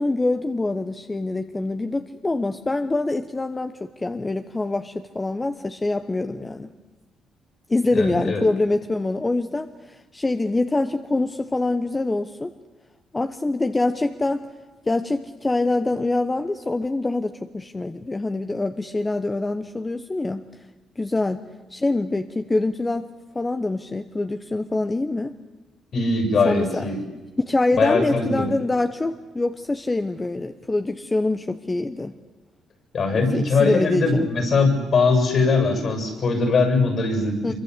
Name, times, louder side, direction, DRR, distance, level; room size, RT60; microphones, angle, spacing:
voice 1, 0.0-6.7 7.7-12.5 13.1-14.5 14.9-20.5 21.0-21.4 21.7-23.1 23.3-25.3 26.4-26.8 27.4-32.1 33.1-34.3 37.4-37.5, left 2 dB, 20° left, 9 dB, 1.0 m, -25 dB
voice 2, 7.9-8.4 25.9-27.0 27.7-28.5 32.9-37.5, left 3 dB, 55° left, 6 dB, 7.4 m, -21 dB
25.5 x 23.5 x 8.3 m, 1.2 s
cardioid pair, 90°, 0 cm